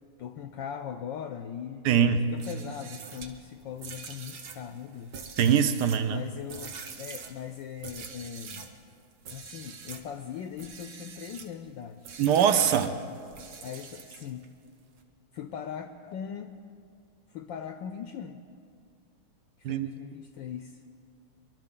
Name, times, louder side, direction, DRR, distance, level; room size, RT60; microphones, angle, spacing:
voice 1, 0.2-1.9 2.3-5.2 6.1-8.7 9.3-12.1 13.1-13.2 13.6-14.5 15.3-16.5 17.3-18.4 19.6-20.8, left 8 dB, 75° left, 7 dB, 1.1 m, -40 dB
voice 2, 1.8-2.3 5.4-6.2 12.2-13.0 19.6-19.9, right 8 dB, 75° right, 10 dB, 1.0 m, -23 dB
sound 1, 2.3-8.8 9.2-10.1 10.5-11.5 12.0-14.5, right 6 dB, 55° right, 1.2 m, -44 dB
24.0 x 12.0 x 3.7 m, 2.3 s
omnidirectional pair, 2.4 m